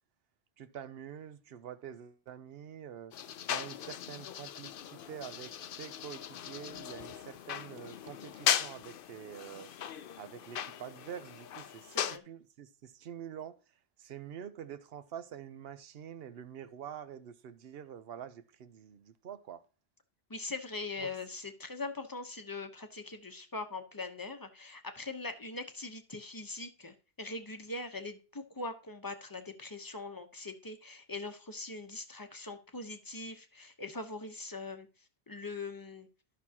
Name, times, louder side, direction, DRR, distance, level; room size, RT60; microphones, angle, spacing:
voice 1, 0.6-3.1 3.5-9.9 10.2-13.6 14.0-19.6 21.0-21.1, right 9 dB, 65° right, 0.9 m, -46 dB
sound 1, 3.1-12.2, left 9 dB, 60° left, 0.7 m, -38 dB
voice 2, 11.9-12.2 20.3-34.9 35.3-36.1, left 3 dB, 20° left, 0.8 m, -42 dB
13.0 x 6.1 x 2.8 m
omnidirectional pair, 1.1 m